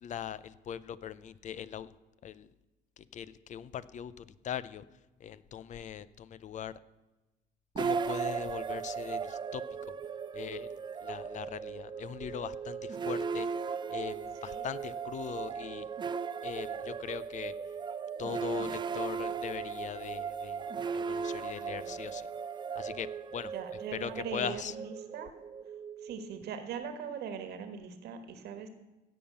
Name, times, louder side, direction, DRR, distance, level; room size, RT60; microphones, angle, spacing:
voice 1, 0.0-1.9 2.2-2.5 3.1-4.8 5.2-6.7 7.8-10.0 10.3-10.7 11.0-13.5 13.9-15.9 16.4-17.5 18.2-20.6 20.9-22.3 22.8-23.1 23.3-23.5 23.9-24.7, left 8 dB, 45° left, 17 dB, 0.6 m, -40 dB
sound 1, 7.8-26.9, right 6 dB, 25° right, 0.4 m, -37 dB
voice 2, 23.5-25.3 26.0-28.7, right 7 dB, 75° right, 9 dB, 1.5 m, -41 dB
16.0 x 5.6 x 6.9 m, 1.1 s
cardioid pair, 110°, 17 cm